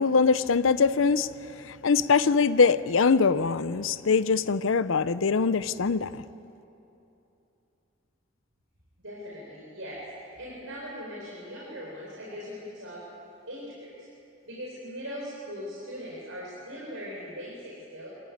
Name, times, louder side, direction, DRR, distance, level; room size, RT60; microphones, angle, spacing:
voice 1, 0.0-6.1, left 5 dB, 75° left, 15 dB, 0.6 m, -23 dB
voice 2, 9.0-13.0 13.5-13.9 14.5-18.1, equal, 80° right, -5 dB, 4.5 m, -40 dB
23.5 x 15.0 x 9.4 m, 2.9 s
head